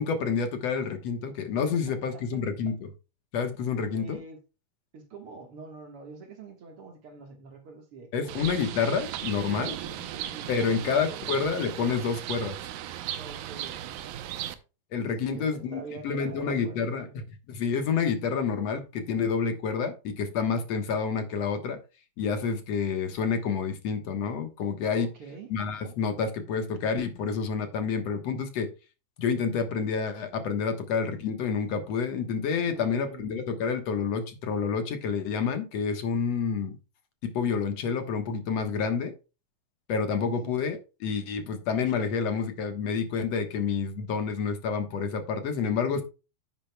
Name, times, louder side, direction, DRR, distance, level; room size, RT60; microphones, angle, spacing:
voice 1, 0.0-2.9 3.3-4.2 8.1-9.8 10.5-12.6 14.9-17.1 17.5-21.8 22.2-25.1 25.5-28.7 29.2-36.8 37.2-39.1 39.9-46.0, left 5 dB, 60° left, 2.0 m, -28 dB
voice 2, 1.9-2.4 3.9-4.4 4.9-8.4 9.8-11.3 13.2-14.6 14.9-17.1 24.9-25.5 32.6-33.4 40.2-40.6, right 4 dB, 50° right, 1.9 m, -45 dB
Bird, 8.3-14.6, right 11 dB, 80° right, 2.5 m, -36 dB
10.0 x 8.8 x 2.3 m
omnidirectional pair, 4.1 m